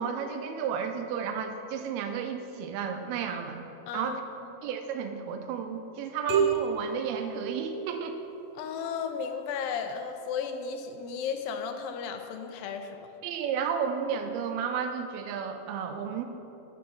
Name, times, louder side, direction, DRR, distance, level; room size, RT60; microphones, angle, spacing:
voice 1, 0.0-3.6 3.9-4.2 4.6-8.2 13.2-16.2, right 7 dB, 85° right, 6 dB, 2.6 m, -32 dB
voice 2, 3.9-4.2 8.5-13.1, left 6 dB, 80° left, 6 dB, 2.3 m, -34 dB
sound 1, 6.3-8.2, right 6 dB, 45° right, 2.7 m, -29 dB
8.4 x 7.1 x 6.2 m, 2.8 s
omnidirectional pair, 4.4 m